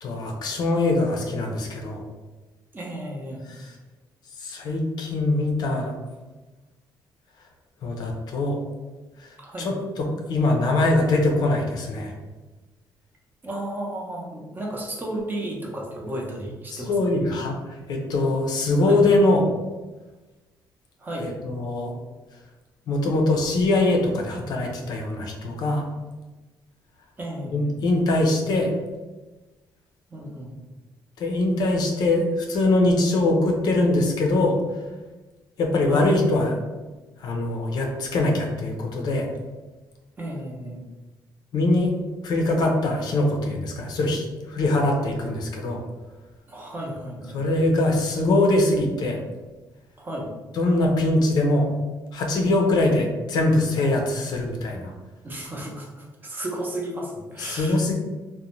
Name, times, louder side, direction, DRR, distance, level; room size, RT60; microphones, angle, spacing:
voice 1, 0.0-2.0 3.5-3.8 4.4-5.9 7.8-8.6 9.2-9.3 9.6-12.1 16.7-19.5 21.2-21.9 22.9-25.9 27.5-28.7 31.2-34.6 35.6-36.6 37.2-39.3 41.5-41.9 42.2-45.8 47.3-49.2 50.5-51.7 52.1-54.9 57.4-57.9, left 2 dB, 60° left, 1 dB, 0.5 m, -22 dB
voice 2, 2.7-3.5 9.4-9.7 13.4-16.9 18.8-19.0 21.0-21.3 27.2-27.7 30.1-30.5 35.8-36.1 40.2-40.8 46.5-47.4 50.0-50.3 55.2-57.8, right 1 dB, 25° right, -2 dB, 0.6 m, -33 dB
2.5 x 2.1 x 3.0 m, 1.2 s
cardioid pair, 120°, 8 cm